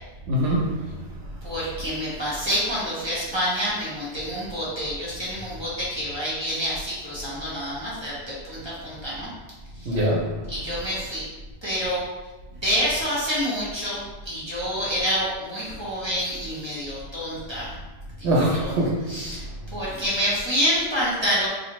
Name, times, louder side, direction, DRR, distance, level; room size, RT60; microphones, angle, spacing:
voice 1, 0.3-1.1 9.9-10.5 18.2-19.3, equal, 85° right, 0.9 m, -24 dB
voice 2, 1.4-9.3 9.8-9.9 10.5-11.2 11.6-12.0 12.6-17.8 18.2-18.7 19.1-19.4 19.7-21.5, equal, 25° right, 1.1 m, -27 dB
4.0 x 2.6 x 3.0 m
omnidirectional pair, 1.1 m